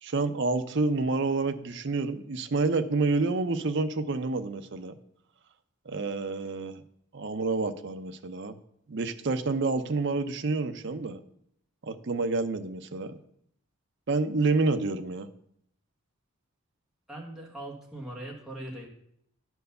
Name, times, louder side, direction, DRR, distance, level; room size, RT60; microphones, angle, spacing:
voice 1, 0.0-4.9 5.9-6.8 7.1-8.6 8.9-11.2 11.8-13.2 14.1-15.3, right 3 dB, 55° right, 9 dB, 0.6 m, -28 dB
voice 2, 17.1-18.9, right 1 dB, 5° right, -3 dB, 1.4 m, -40 dB
10.0 x 4.6 x 6.7 m, 0.72 s
head